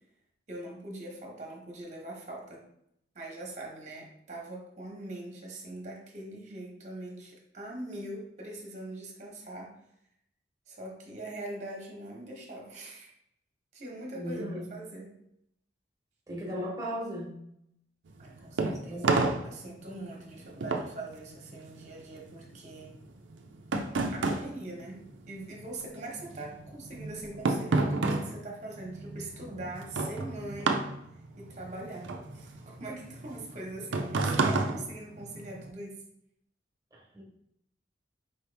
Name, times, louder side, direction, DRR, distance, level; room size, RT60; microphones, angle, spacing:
voice 1, 0.5-2.6 3.1-9.7 10.7-13.1 13.7-14.4 14.7-15.2 18.2-19.1 19.4-22.9 24.1-25.0 25.3-30.9 31.4-36.0, right 2 dB, 40° right, -1 dB, 1.0 m, -42 dB
voice 2, 14.1-14.6 16.3-17.4 18.9-19.1 36.9-37.2, equal, 20° right, -3 dB, 1.1 m, -36 dB
sound 1, 18.1-25.7 26.0-35.7, right 3 dB, 85° right, 0.5 m, -31 dB
4.5 x 3.0 x 3.4 m, 0.75 s
head